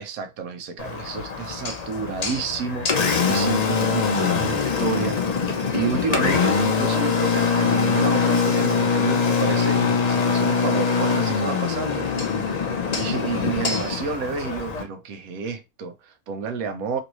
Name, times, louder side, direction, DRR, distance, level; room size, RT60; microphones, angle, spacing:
voice 1, 0.0-5.2 5.7-12.1 12.9-17.0, right 5 dB, 70° right, 1.0 m, -30 dB
Engine, 0.8-14.8, left 5 dB, 75° left, 0.3 m, -23 dB
3.1 x 2.6 x 3.0 m
omnidirectional pair, 1.6 m